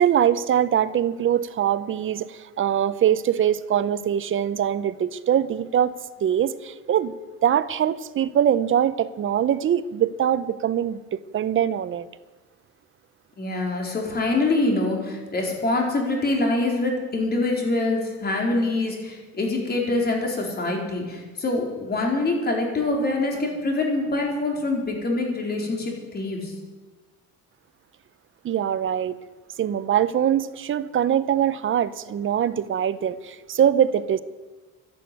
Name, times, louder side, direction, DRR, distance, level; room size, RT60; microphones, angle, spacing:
voice 1, 0.0-6.0 6.2-7.1 7.4-12.1 28.4-29.2 29.6-34.2, right 9 dB, 40° right, 15 dB, 0.7 m, -23 dB
voice 2, 13.4-26.5, left 2 dB, 30° left, 0 dB, 4.2 m, -25 dB
12.0 x 11.5 x 9.1 m, 1.3 s
cardioid pair, 135°, 32 cm